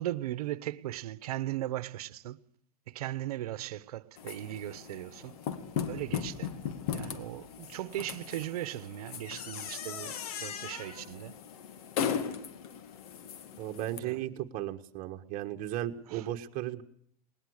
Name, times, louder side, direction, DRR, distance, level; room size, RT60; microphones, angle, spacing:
voice 1, 0.0-2.4 2.9-5.4 5.9-6.5 6.9-11.4 14.0-14.2 16.1-16.3, right 14 dB, 85° right, 1.0 m, -38 dB
sound 1, 4.2-14.0, left 8 dB, 75° left, 2.2 m, -38 dB
voice 2, 13.6-16.8, right 13 dB, 45° right, 1.6 m, -35 dB
20.5 x 20.0 x 6.6 m
supercardioid pair, 125°, 19 cm